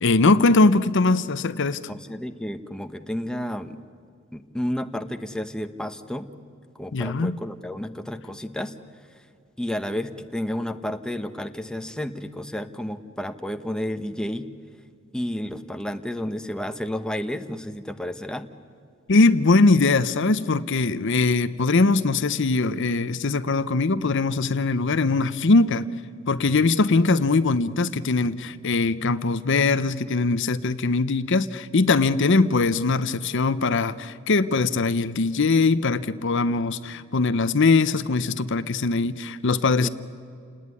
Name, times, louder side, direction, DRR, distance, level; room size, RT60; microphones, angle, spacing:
voice 1, 0.0-1.8 6.9-7.4 19.1-25.9 26.3-39.9, left 3 dB, 60° left, 14 dB, 0.7 m, -21 dB
voice 2, 1.9-3.8 4.3-6.3 6.7-8.7 9.6-14.5 15.1-18.5 39.8-39.9, left 1 dB, 5° left, 8 dB, 0.9 m, -31 dB
29.0 x 19.0 x 9.8 m, 2.3 s
head